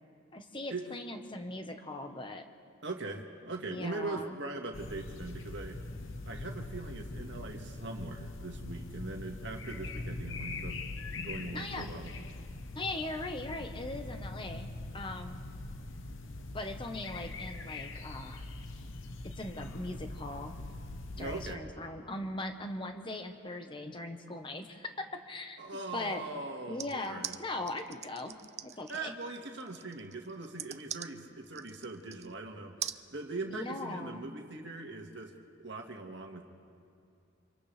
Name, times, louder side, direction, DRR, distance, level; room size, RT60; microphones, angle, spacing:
voice 1, 0.3-2.4 3.6-4.4 11.5-11.9 12.7-15.5 16.5-18.4 19.4-20.6 21.2-24.9 25.3-25.6 25.9-26.2 26.7-28.4 28.6-29.1 33.5-34.2, left 2 dB, 25° left, 6 dB, 1.1 m, -40 dB
voice 2, 2.8-5.8 6.2-10.8 11.2-12.2 21.2-21.6 25.6-27.3 28.9-32.8 33.1-35.3 35.6-36.5, right 3 dB, 60° right, 2 dB, 1.9 m, -41 dB
sound 1, 4.7-21.5, left 2 dB, 75° left, 1.0 m, -42 dB
sound 2, 26.8-32.3 32.8-33.0, right 10 dB, 35° right, 0.4 m, -42 dB
30.0 x 26.0 x 3.4 m, 2.5 s
head